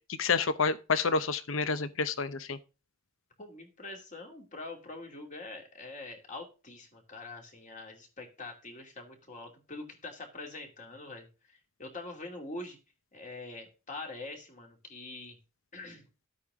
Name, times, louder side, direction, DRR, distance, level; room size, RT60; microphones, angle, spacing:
voice 1, 0.2-2.6, left 4 dB, 75° left, 0.8 m, -29 dB
voice 2, 3.4-12.8 13.1-15.4 15.7-16.0, left 2 dB, 40° left, 2.6 m, -44 dB
12.5 x 8.4 x 3.7 m
head